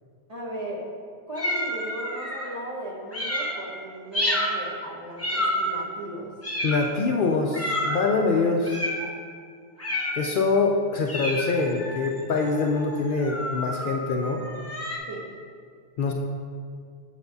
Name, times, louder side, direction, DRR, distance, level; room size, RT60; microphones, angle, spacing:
voice 1, 0.3-0.9 1.3-6.3 15.1-15.3, right 1 dB, 35° right, -6 dB, 1.4 m, -36 dB
sound 1, 1.4-2.5 3.1-3.6 4.1-4.6 5.2-5.8 6.4-7.0 7.5-8.0 8.6-9.1 9.8-10.3 11.1-15.0, left 1 dB, 15° left, 1.0 m, -29 dB
voice 2, 6.6-8.8 10.2-14.4 16.0-16.1, left 4 dB, 60° left, 1 dB, 0.6 m, -24 dB
7.9 x 7.3 x 2.6 m, 2.2 s
omnidirectional pair, 1.1 m